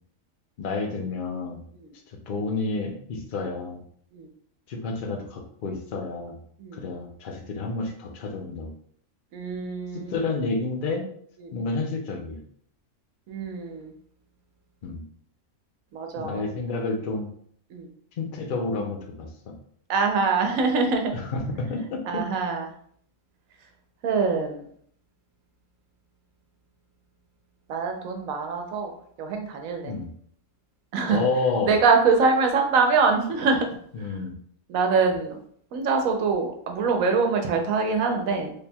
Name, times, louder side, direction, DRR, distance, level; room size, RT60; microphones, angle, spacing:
voice 1, 0.6-1.6 2.1-3.8 4.7-6.4 6.7-8.7 9.9-11.1 11.5-12.4 14.8-15.0 16.2-17.3 18.2-19.3 21.1-22.2 29.8-30.1 31.1-31.8 33.9-34.3, left 3 dB, 50° left, 2 dB, 0.7 m, -30 dB
voice 2, 9.3-10.1 11.4-11.7 13.3-13.9 15.9-16.4 17.7-17.9 19.9-21.1 22.1-22.7 24.0-24.6 27.7-28.9 29.2-29.9 30.9-31.2 31.6-33.7 34.7-35.4 35.7-38.5, right 4 dB, 90° right, 4 dB, 1.1 m, -24 dB
4.2 x 3.3 x 2.3 m, 0.63 s
omnidirectional pair, 1.4 m